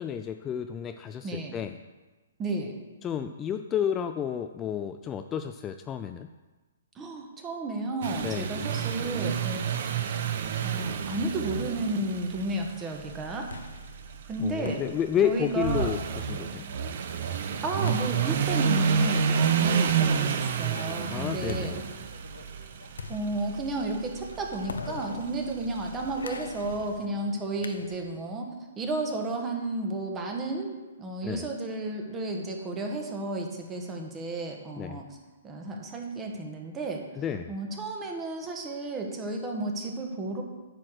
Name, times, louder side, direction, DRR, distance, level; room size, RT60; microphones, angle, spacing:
voice 1, 0.0-1.8 3.0-6.3 8.2-8.5 14.4-16.7 21.1-21.8 31.2-31.5 34.8-35.0 37.2-37.5, left 9 dB, 20° left, 8 dB, 0.3 m, -31 dB
voice 2, 1.2-1.5 2.4-2.7 6.9-9.6 10.6-13.5 14.3-14.8 15.2-15.9 17.6-21.8 23.1-28.5 28.7-35.0 35.4-37.0 37.5-40.4, right 2 dB, 20° right, 2 dB, 1.3 m, -32 dB
sound 1, 8.0-26.9, right 6 dB, 55° right, 0.8 m, -30 dB
sound 2, 13.2-28.3, left 4 dB, 85° left, 0.6 m, -45 dB
9.5 x 4.5 x 6.6 m, 1.2 s
hypercardioid pair, 140°, 0 cm